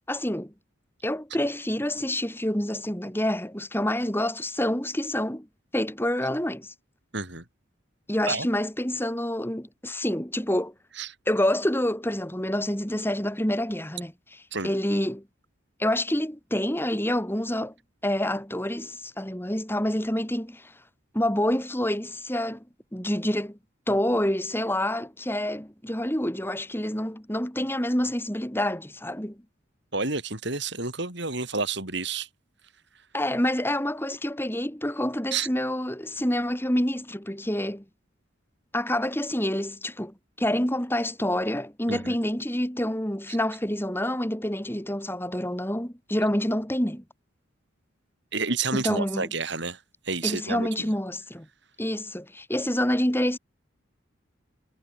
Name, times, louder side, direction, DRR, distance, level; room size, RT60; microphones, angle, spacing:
voice 1, 0.1-0.5 1.0-5.5 5.7-6.7 8.1-10.7 11.3-15.2 15.8-17.7 18.0-20.7 21.1-22.6 22.9-23.6 23.9-29.4 33.1-37.8 38.7-47.0 48.8-49.3 50.2-51.5 51.8-53.4, left 1 dB, 10° left, 4.0 m, -27 dB
voice 2, 7.1-7.4 8.3-8.5 11.0-11.1 14.5-14.7 29.9-32.3 35.3-35.5 41.9-42.1 48.3-49.8 50.1-50.9, right 4 dB, 60° right, 5.8 m, -30 dB
head